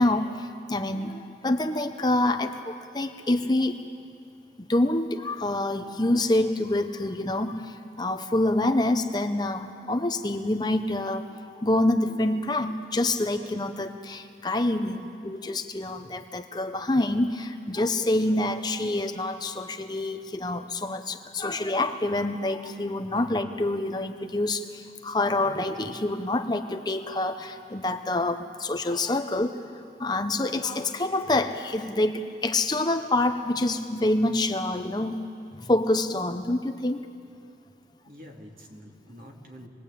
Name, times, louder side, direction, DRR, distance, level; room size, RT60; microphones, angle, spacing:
voice 1, 0.0-3.8 4.6-11.2 11.6-29.6 30.0-35.2 35.6-37.1, left 2 dB, 25° left, 6 dB, 0.8 m, -26 dB
voice 2, 23.0-23.4 38.1-39.7, equal, 50° right, 0 dB, 2.8 m, -46 dB
27.0 x 20.5 x 8.5 m, 2.6 s
head